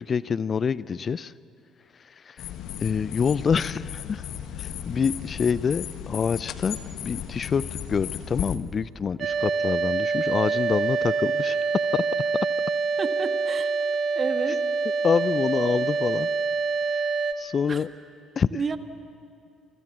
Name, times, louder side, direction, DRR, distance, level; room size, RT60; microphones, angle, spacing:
voice 1, 0.0-1.3 1.9-2.5 2.8-4.3 4.6-11.6 11.9-12.0 15.0-16.3 16.9-17.9 18.4-18.6, left 6 dB, 40° left, 19 dB, 0.5 m, -26 dB
sound 1, 2.4-8.6, left 9 dB, 65° left, 1.5 m, -35 dB
sound 2, 9.2-17.3, right 4 dB, 55° right, 1.5 m, -26 dB
voice 2, 13.0-13.7 14.2-14.6 17.7-17.8 18.5-18.8, right 5 dB, 40° right, 9 dB, 1.8 m, -30 dB
28.0 x 23.0 x 7.5 m, 2.5 s
hypercardioid pair, 55°, 0 cm